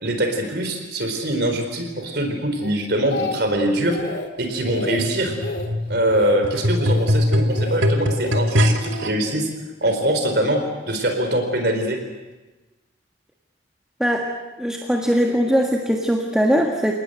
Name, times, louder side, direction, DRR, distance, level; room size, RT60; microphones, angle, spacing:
voice 1, 0.0-4.0 4.4-5.4 5.9-9.5 9.8-12.0, right 1 dB, 55° right, 5 dB, 4.2 m, -23 dB
Speech, 2.6-3.6 3.9-4.3 4.6-5.0 5.4-5.7 6.1-6.4 6.7-7.1 7.5-7.8 8.2-9.1 9.8-10.1, left 2 dB, 55° left, 2.4 m, -31 dB
sound 1, 4.7-9.1 9.9-10.0, left 1 dB, 85° right, 2.6 m, -22 dB
voice 2, 14.6-16.9, equal, 5° right, 0 dB, 1.6 m, -20 dB
29.0 x 19.0 x 7.9 m, 1.1 s
head